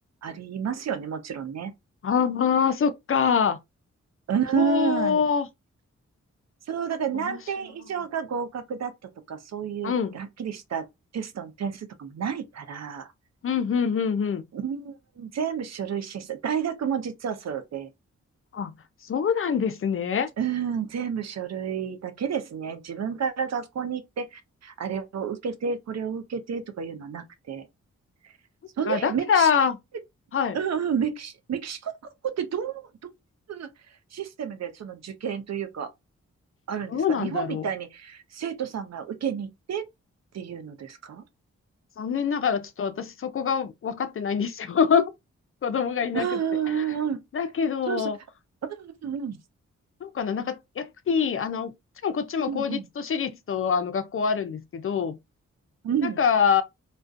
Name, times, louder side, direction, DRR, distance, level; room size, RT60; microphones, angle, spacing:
voice 1, 0.2-1.7 4.3-5.3 6.7-8.9 9.3-10.9 11.1-13.1 14.5-17.9 20.4-27.7 28.8-29.5 30.5-31.9 32.2-32.9 33.5-33.7 34.1-35.9 36.7-39.9 40.3-41.2 46.1-47.2 47.9-48.1 48.6-49.4 52.5-52.9 55.8-56.2, right 7 dB, 55° right, 0.6 m, -30 dB
voice 2, 2.0-3.6 4.5-5.5 7.1-7.4 9.8-10.2 13.4-14.4 18.5-18.7 19.0-20.3 28.9-29.8 30.3-30.6 36.9-37.7 42.0-45.1 45.6-46.4 46.7-46.9 47.3-48.2 50.0-51.7 52.0-55.2 56.2-56.6, left 6 dB, 45° left, 0.4 m, -25 dB
2.3 x 2.2 x 2.5 m
supercardioid pair, 45°, 31 cm